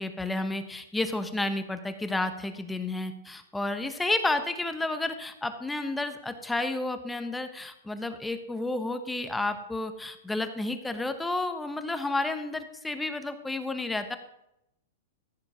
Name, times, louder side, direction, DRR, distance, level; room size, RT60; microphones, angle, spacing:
voice 1, 0.0-14.2, left 2 dB, 5° left, 9 dB, 0.9 m, -31 dB
14.5 x 5.2 x 6.1 m, 0.83 s
hypercardioid pair, 150°, 0 cm